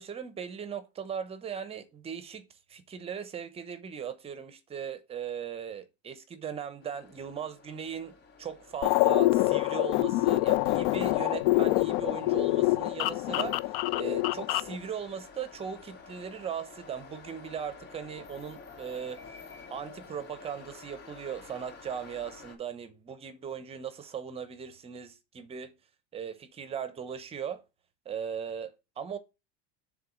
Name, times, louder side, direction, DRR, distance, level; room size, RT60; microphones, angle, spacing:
voice 1, 0.0-19.4 19.7-25.8 26.1-27.6 28.1-29.2, right 7 dB, 20° right, 0.7 m, -38 dB
sound 1, 6.8-22.6, left 5 dB, 55° left, 3.3 m, -51 dB
sound 2, 8.8-14.8, left 17 dB, 70° left, 0.5 m, -26 dB
6.7 x 3.8 x 6.1 m
supercardioid pair, 160°, 32 cm